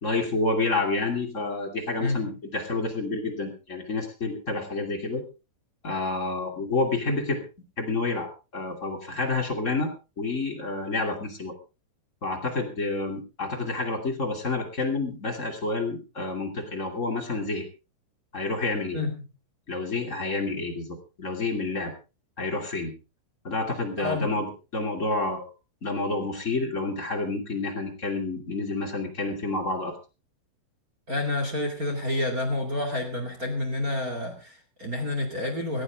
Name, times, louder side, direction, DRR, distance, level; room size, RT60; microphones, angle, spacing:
voice 1, 0.0-5.2 5.8-7.4 7.8-9.9 10.2-11.5 12.2-17.6 18.3-19.0 19.7-21.9 22.4-22.9 23.4-24.5 24.7-25.4 25.8-29.9, left 3 dB, 30° left, 2 dB, 1.5 m, -29 dB
voice 2, 2.0-2.4 18.9-19.3 24.0-24.4 31.1-35.8, left 2 dB, 45° right, 3 dB, 1.1 m, -29 dB
18.0 x 14.5 x 3.5 m, 0.31 s
omnidirectional pair, 5.7 m